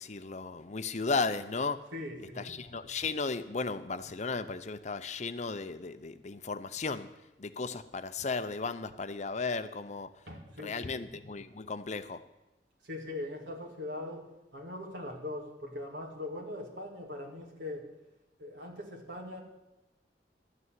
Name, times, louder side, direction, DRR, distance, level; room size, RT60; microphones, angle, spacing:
voice 1, 0.0-1.8 2.4-7.1 7.4-10.1 10.6-12.2, left 4 dB, 40° left, 11 dB, 0.7 m, -35 dB
voice 2, 1.9-2.6 10.3-11.1 12.8-14.3 14.5-17.9 18.4-19.4, left 1 dB, 85° right, 1 dB, 2.4 m, -41 dB
12.0 x 6.8 x 9.2 m, 1.0 s
head